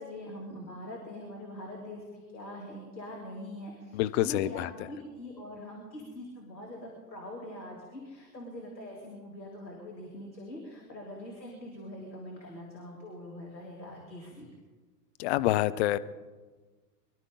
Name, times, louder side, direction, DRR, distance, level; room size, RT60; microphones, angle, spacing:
voice 1, 0.0-14.5, left 1 dB, 85° left, -1 dB, 3.1 m, -43 dB
voice 2, 3.9-4.7 15.2-16.0, left 15 dB, 40° left, 13 dB, 0.7 m, -27 dB
24.0 x 12.5 x 3.8 m, 1.3 s
figure-of-eight pair, 100°, 50 cm